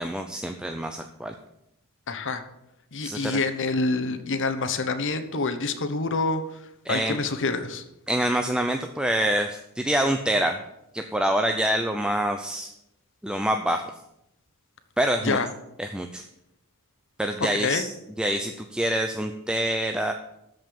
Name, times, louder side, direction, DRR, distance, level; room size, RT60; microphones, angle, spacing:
voice 1, 0.0-1.3 3.0-3.4 6.8-7.2 8.1-10.6 10.9-12.7 13.2-13.9 15.0-15.4 15.8-16.2 17.2-20.1, right 1 dB, 5° right, 5 dB, 0.5 m, -26 dB
voice 2, 2.1-2.4 2.9-6.6 6.9-7.8 15.2-15.5 17.6-17.8, left 3 dB, 55° left, 8 dB, 1.1 m, -27 dB
13.0 x 5.3 x 7.7 m, 0.83 s
head